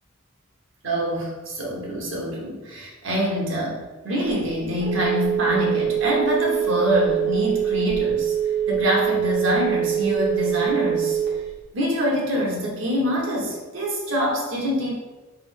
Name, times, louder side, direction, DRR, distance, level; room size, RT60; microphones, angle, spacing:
voice 1, 0.8-8.3 8.7-11.2 11.7-14.9, equal, 85° right, -3 dB, 1.1 m, -25 dB
Telephone, 4.3-11.6, right 9 dB, 55° right, 1.1 m, -24 dB
3.5 x 3.4 x 3.6 m, 1.2 s
head